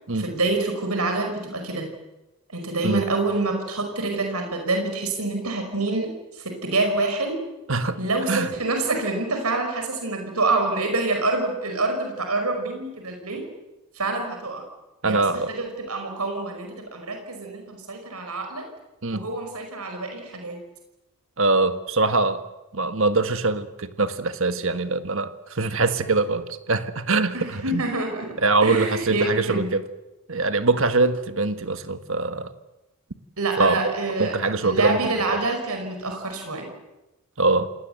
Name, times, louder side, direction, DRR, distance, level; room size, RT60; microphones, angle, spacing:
voice 1, 0.1-1.9 2.5-7.4 8.0-13.5 14.0-14.6 15.0-18.7 19.1-20.6 27.3-28.4 28.6-29.7 33.4-36.7, right 2 dB, 85° right, 5.2 m, -27 dB
voice 2, 15.0-15.5 19.0-19.2 21.4-22.4 22.7-27.8 28.4-29.8 30.3-32.5 33.6-33.9 34.2-35.0 35.3-35.4 37.4-37.7, right 3 dB, 60° right, 1.6 m, -23 dB
28.5 x 19.5 x 8.0 m
head